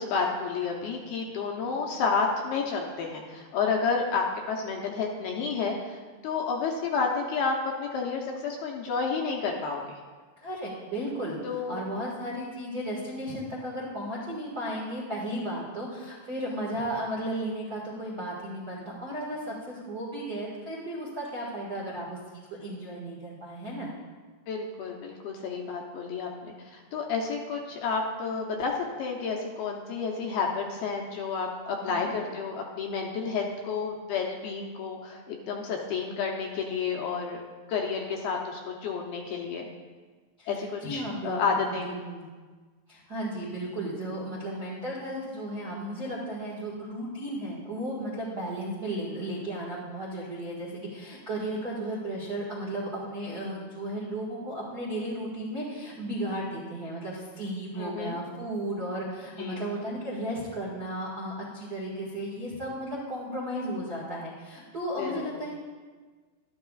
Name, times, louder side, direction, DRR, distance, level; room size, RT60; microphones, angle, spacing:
voice 1, 0.0-10.0 11.4-11.8 24.5-37.4 37.7-39.7 40.5-41.9 57.8-58.2 59.4-59.7 65.0-65.2, left 5 dB, 75° left, 0 dB, 2.4 m, -30 dB
voice 2, 10.4-23.9 31.8-32.1 40.4-42.2 42.9-65.6, right 1 dB, 90° right, -7 dB, 0.8 m, -34 dB
12.5 x 12.5 x 2.4 m, 1.4 s
omnidirectional pair, 5.1 m